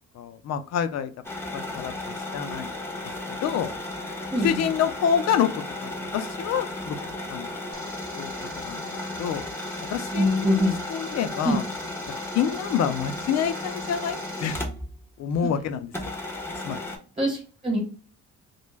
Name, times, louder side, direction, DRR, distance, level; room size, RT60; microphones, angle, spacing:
voice 1, 0.1-1.1 1.5-2.7 3.3-3.7 4.4-7.0 7.3-7.5 8.2-8.3 8.6-8.8 9.2-9.4 9.9-11.6 12.3-14.6 15.2-15.9 16.6-16.8, left 8 dB, 60° left, 11 dB, 0.4 m, -27 dB
sound 1, 1.2-15.0 15.3-15.4 15.9-17.0, left 2 dB, 10° left, 0.6 m, -34 dB
voice 2, 4.3-4.7 8.8-9.2 10.1-10.8 11.4-11.6 17.2-17.8, equal, 25° right, -2 dB, 1.1 m, -24 dB
sound 2, 7.7-14.6, right 4 dB, 60° right, 0.8 m, -46 dB
2.2 x 2.1 x 3.1 m, 0.38 s
cardioid pair, 90°, 30 cm